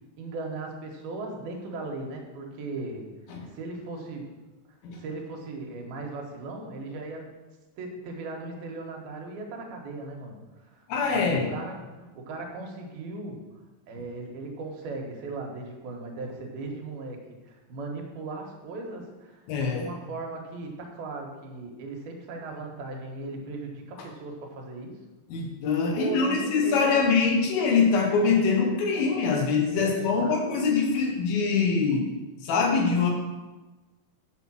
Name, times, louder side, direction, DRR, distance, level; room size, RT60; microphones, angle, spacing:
voice 1, 0.2-3.1 3.5-4.3 4.9-7.3 7.8-10.8 11.1-13.4 13.9-25.0 25.9-27.1 29.7-30.4, right 3 dB, 85° right, 1 dB, 3.3 m, -37 dB
voice 2, 10.9-11.5 19.5-19.9 25.3-32.0 32.4-33.1, left 5 dB, 80° left, 1 dB, 3.3 m, -24 dB
8.0 x 7.1 x 6.3 m, 1.2 s
omnidirectional pair, 4.2 m